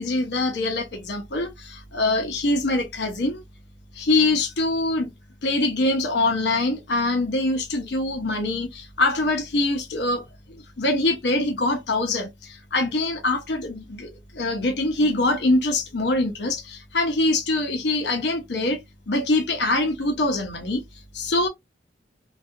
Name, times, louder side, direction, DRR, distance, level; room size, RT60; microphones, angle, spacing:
voice 1, 0.0-3.4 3.9-5.1 5.4-20.8 21.1-21.5, left 2 dB, 75° left, 0.6 m, -24 dB
2.6 x 2.3 x 2.3 m
head